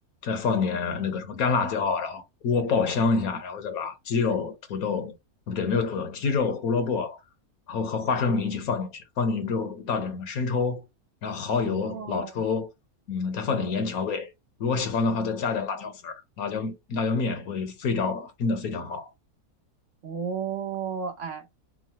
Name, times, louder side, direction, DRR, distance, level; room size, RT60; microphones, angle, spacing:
voice 1, 0.2-5.1 5.5-7.2 7.7-10.8 11.2-12.7 13.1-14.3 14.6-19.1, left 4 dB, 70° left, 1.3 m, -27 dB
voice 2, 11.6-12.4 20.0-21.4, right 7 dB, 60° right, 1.0 m, -33 dB
3.7 x 2.0 x 2.7 m
omnidirectional pair, 1.6 m